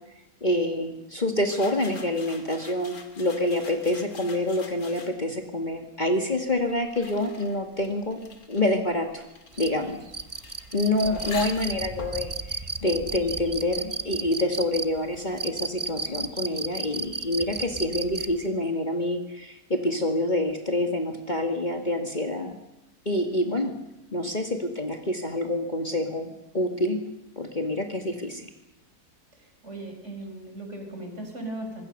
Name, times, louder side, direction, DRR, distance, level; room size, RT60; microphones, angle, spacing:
voice 1, 0.4-8.2 8.5-9.2 9.6-10.0 10.7-22.6 23.1-23.7 24.1-27.0 27.4-28.5, left 1 dB, 30° left, 4 dB, 2.1 m, -27 dB
sound 1, 1.4-5.4 6.2-13.6, left 4 dB, 70° left, 2.7 m, -46 dB
sound 2, 9.5-18.5, right 4 dB, 25° right, 0.8 m, -33 dB
voice 2, 11.0-11.3 29.3-31.9, right 1 dB, 45° right, 3 dB, 6.0 m, -38 dB
25.5 x 21.0 x 6.7 m, 0.97 s
omnidirectional pair, 1.6 m